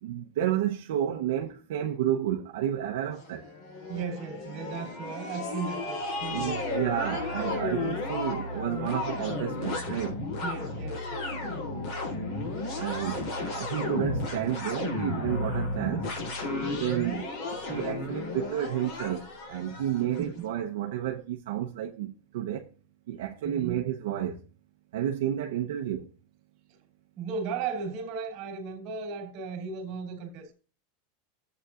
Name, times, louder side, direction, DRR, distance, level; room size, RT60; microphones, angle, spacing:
voice 1, 0.0-3.5 6.3-10.2 12.7-16.1 16.6-17.3 17.7-22.7 23.1-24.4 24.9-26.1, right 11 dB, 75° right, 0.8 m, -31 dB
sound 1, 3.2-20.3, left 2 dB, 50° left, 3.7 m, -33 dB
voice 2, 3.9-6.9 10.4-12.1 16.8-17.2 20.1-20.4 23.4-23.8 26.7-26.8 27.1-30.5, right 5 dB, 45° right, 2.9 m, -36 dB
13.5 x 8.0 x 2.5 m
supercardioid pair, 155°, 0 cm